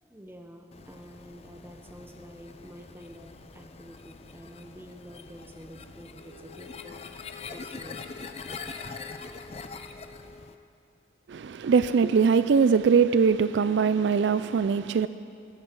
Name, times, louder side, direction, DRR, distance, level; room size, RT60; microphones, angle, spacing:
voice 1, 0.0-8.1, equal, 10° right, 1.0 m, -48 dB
sound 1, 0.7-10.5, left 4 dB, 30° left, 0.5 m, -43 dB
Wind instrument woodwind instrument, 6.1-10.6, left 6 dB, 60° left, 1.4 m, -51 dB
voice 2, 11.3-15.1, right 6 dB, 65° right, 0.3 m, -22 dB
20.5 x 8.7 x 6.1 m
head